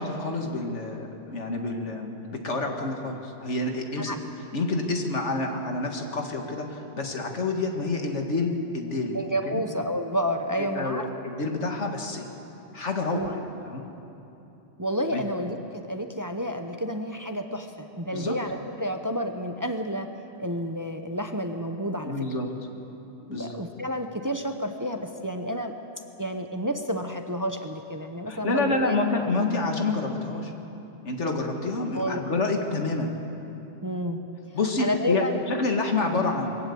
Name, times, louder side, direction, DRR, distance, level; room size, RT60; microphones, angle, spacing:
voice 1, 0.0-4.2 4.5-9.2 9.5-9.6 10.6-12.3 12.7-13.8 15.1-15.2 18.1-18.4 22.0-22.5 23.3-23.6 28.3-30.5 31.0-33.1 34.5-36.5, left 3 dB, 80° left, 3 dB, 2.1 m, -28 dB
voice 2, 9.1-11.1 13.1-13.4 14.8-15.6 15.9-20.1 20.4-22.2 23.3-25.7 26.2-29.0 31.9-32.5 33.8-34.2 34.8-35.4, equal, 20° right, 6 dB, 0.9 m, -30 dB
22.5 x 15.0 x 8.6 m, 2.9 s
omnidirectional pair, 1.2 m